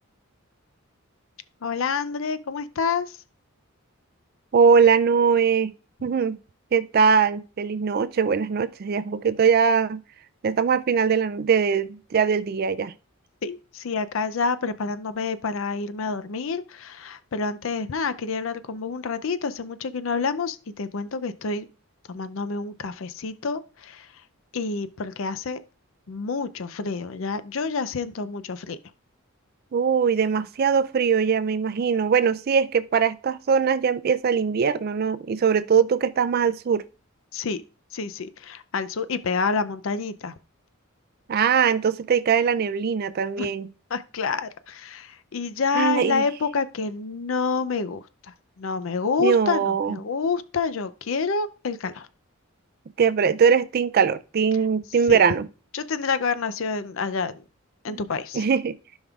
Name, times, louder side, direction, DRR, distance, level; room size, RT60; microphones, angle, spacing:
voice 1, 1.6-3.2 13.4-21.7 22.1-24.1 24.5-25.6 26.1-28.8 37.3-37.6 37.9-40.3 43.4-43.5 43.9-48.0 48.6-52.1 55.1-55.2 55.7-57.4 57.8-58.4, left 4 dB, 60° left, 0.5 m, -28 dB
voice 2, 4.5-5.7 6.0-6.4 6.7-10.0 10.4-12.9 29.7-36.8 41.3-43.7 45.7-46.2 49.2-50.0 53.0-55.5 57.9-58.0 58.3-58.8, right 6 dB, 45° right, 0.3 m, -21 dB
15.5 x 5.3 x 2.4 m
head